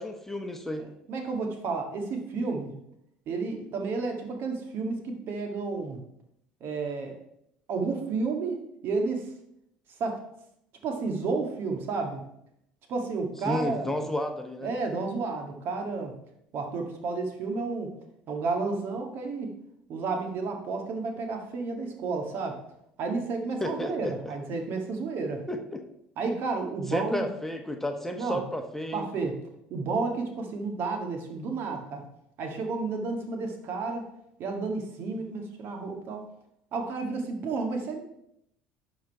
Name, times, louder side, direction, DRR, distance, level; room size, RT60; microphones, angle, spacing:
voice 1, 0.0-0.8 13.4-14.7 23.6-24.3 25.5-25.8 26.9-29.1, left 1 dB, 5° left, 4 dB, 1.1 m, -32 dB
voice 2, 0.8-2.8 3.3-6.0 6.6-7.1 7.7-9.3 10.0-10.2 10.8-12.3 12.9-13.9 14.6-16.1 16.5-17.9 18.3-19.5 19.9-22.6 23.0-25.5 26.2-27.3 28.2-28.4 28.9-29.4 29.7-32.0 32.4-34.1 34.4-36.2 36.7-38.0, right 4 dB, 55° right, 3 dB, 1.8 m, -31 dB
11.0 x 4.1 x 4.7 m, 0.76 s
hypercardioid pair, 65°, 5 cm